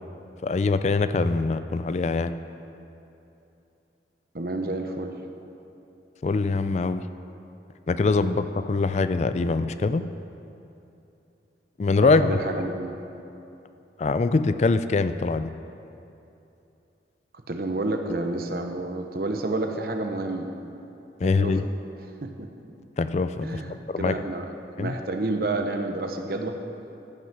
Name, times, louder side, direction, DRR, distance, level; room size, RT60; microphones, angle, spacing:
voice 1, 0.4-2.3 6.2-7.0 7.9-10.0 11.8-12.3 12.6-12.7 14.0-15.5 21.2-21.6 23.0-23.6 23.9-24.1 24.8-24.9, left 3 dB, 40° left, 11 dB, 0.3 m, -23 dB
voice 2, 4.3-5.2 8.2-8.3 12.0-12.9 17.5-20.5 21.2-21.6 22.2-22.5 23.4-24.5 24.8-26.6, right 2 dB, 55° right, 5 dB, 0.8 m, -29 dB
14.5 x 6.1 x 6.0 m, 2.8 s
head